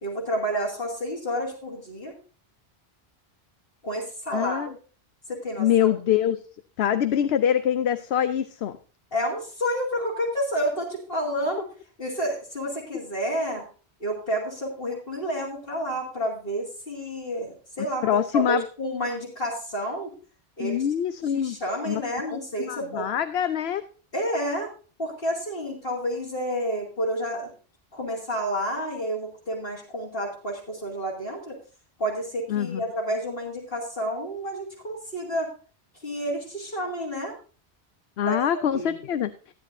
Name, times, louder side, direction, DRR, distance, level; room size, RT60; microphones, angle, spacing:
voice 1, 0.0-2.1 3.8-4.6 5.3-5.9 9.1-11.7 12.0-13.7 14.0-20.1 20.6-20.9 21.3-23.1 24.1-24.7 25.0-27.5 27.9-31.6 32.0-35.5 36.0-37.3 38.2-38.4 38.7-39.0, equal, 60° left, -4 dB, 3.0 m, -30 dB
voice 2, 4.3-4.7 5.6-6.4 6.8-8.7 18.0-18.6 20.6-21.6 21.9-22.0 22.7-23.8 32.5-32.8 38.2-39.3, left 9 dB, 80° left, 11 dB, 0.9 m, -24 dB
15.0 x 9.8 x 2.6 m, 0.38 s
omnidirectional pair, 1.1 m